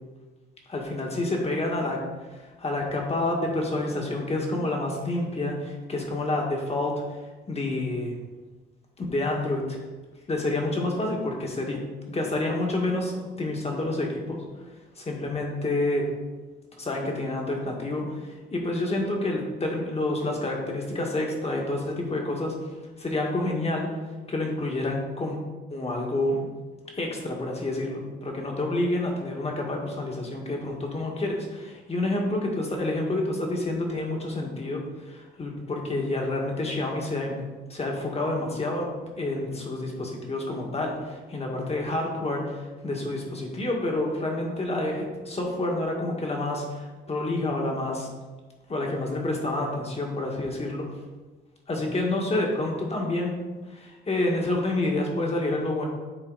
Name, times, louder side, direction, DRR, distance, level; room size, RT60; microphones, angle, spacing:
voice 1, 0.7-2.0 2.3-7.0 7.5-8.2 9.0-9.8 10.3-14.4 15.0-16.1 16.8-22.5 23.0-23.9 24.3-25.4 25.7-26.4 26.9-37.4 37.7-38.9 39.2-48.1 48.7-50.9 51.7-53.4 53.7-55.9, left 2 dB, 30° left, 0 dB, 1.8 m, -28 dB
9.7 x 4.0 x 4.1 m, 1.3 s
cardioid pair, 90°, 20 cm